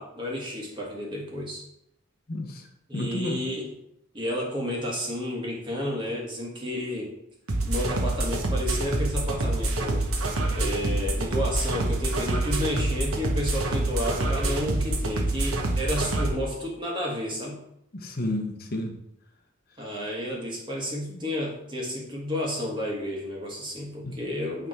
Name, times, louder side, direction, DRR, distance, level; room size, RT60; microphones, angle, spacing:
voice 1, 0.0-1.6 2.9-3.7 4.1-7.1 7.7-10.1 10.5-17.6 19.8-24.7, left 1 dB, 25° right, -2 dB, 1.7 m, -31 dB
voice 2, 2.3-2.6 2.9-3.4 17.9-18.9 21.1-21.2 24.0-24.2, left 1 dB, 45° left, 3 dB, 1.0 m, -31 dB
sound 1, 7.5-16.3, right 2 dB, 90° right, 1.2 m, -26 dB
9.2 x 3.5 x 4.5 m, 0.77 s
head